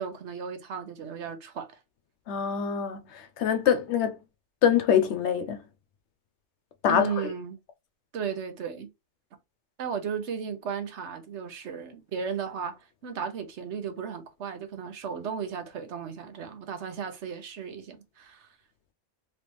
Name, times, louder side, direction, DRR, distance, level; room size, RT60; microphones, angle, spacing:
voice 1, 0.0-1.8 6.9-7.6 8.1-8.9 9.8-18.6, right 6 dB, 65° right, 1.1 m, -35 dB
voice 2, 2.3-4.2 4.6-5.6 6.8-7.1, left 8 dB, 70° left, 0.8 m, -24 dB
3.3 x 3.1 x 2.9 m
omnidirectional pair, 1.3 m